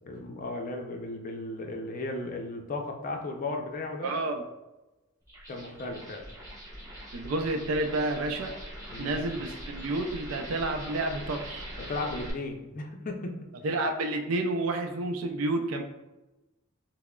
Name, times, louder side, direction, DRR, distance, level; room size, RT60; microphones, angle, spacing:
voice 1, 0.0-4.1 5.5-6.2 7.2-7.3 8.9-9.2 11.8-13.4, left 2 dB, 40° left, 3 dB, 0.4 m, -35 dB
voice 2, 4.0-4.4 7.1-8.5 9.0-11.7 13.6-15.8, right 2 dB, 75° right, 4 dB, 0.4 m, -30 dB
sound 1, 5.2-12.3, equal, 15° right, 0.9 m, -42 dB
5.7 x 2.0 x 2.2 m, 1.0 s
head